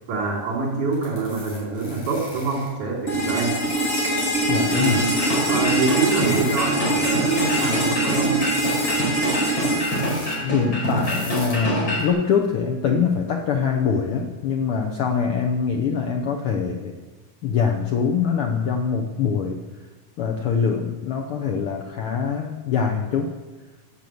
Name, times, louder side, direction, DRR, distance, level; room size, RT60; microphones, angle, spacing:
voice 1, 0.1-3.6 4.7-8.4, right 4 dB, 90° right, -2 dB, 5.0 m, -25 dB
sound 1, 0.9-2.7 3.2-4.0 4.3-5.5 5.7-6.6 6.9-7.8 8.2-9.0 9.3-10.4 10.8-11.6 12.0-12.1, left 1 dB, 55° left, 5.3 m, -40 dB
sound 2, 3.1-11.0, right 1 dB, 25° left, 2.2 m, -24 dB
voice 2, 4.5-5.1 10.4-16.9 17.4-19.6 20.2-23.3, left 6 dB, 75° left, 2 dB, 1.3 m, -23 dB
sound 3, 4.7-12.1, equal, 40° left, 5.6 m, -26 dB
12.0 x 6.9 x 7.8 m, 1.2 s
omnidirectional pair, 3.5 m